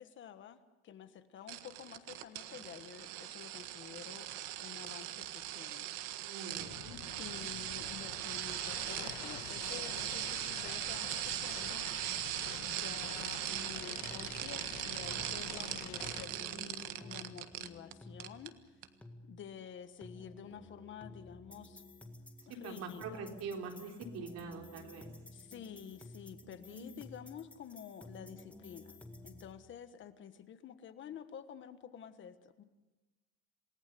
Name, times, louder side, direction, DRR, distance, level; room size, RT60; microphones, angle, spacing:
voice 1, 0.0-4.3 4.6-6.0 7.2-11.8 12.6-18.8 19.3-21.8 22.5-23.2 25.3-29.0 29.2-32.6, left 8 dB, 40° left, 10 dB, 1.4 m, -50 dB
sound 1, 1.5-17.9 18.2-18.5 18.8-18.9, right 14 dB, 85° right, 1.6 m, -40 dB
voice 2, 6.3-6.9 16.2-17.2 22.5-25.1 26.4-26.8, right 4 dB, 55° right, 3 dB, 4.0 m, -45 dB
sound 2, 6.6-16.2, left 11 dB, 65° left, 1.8 m, -48 dB
sound 3, 13.5-29.5, left 1 dB, 5° left, 1.9 m, -54 dB
28.0 x 18.5 x 6.9 m, 1.1 s
cardioid pair, 155°, 30 cm